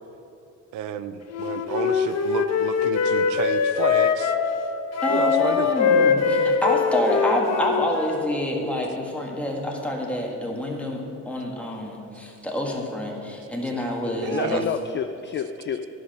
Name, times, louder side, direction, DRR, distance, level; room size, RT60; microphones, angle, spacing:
voice 1, 0.7-4.3 5.1-5.7 14.2-14.6, right 9 dB, 80° right, 12 dB, 0.5 m, -31 dB
Wind instrument woodwind instrument, 1.3-4.5 4.9-8.3, left 6 dB, 60° left, 0.8 m, -22 dB
voice 2, 5.0-14.6, left 1 dB, 5° left, -1 dB, 1.6 m, -27 dB
voice 3, 14.2-15.9, left 7 dB, 40° left, 8 dB, 0.4 m, -29 dB
11.0 x 4.8 x 6.5 m, 2.8 s
cardioid pair, 90°, 30 cm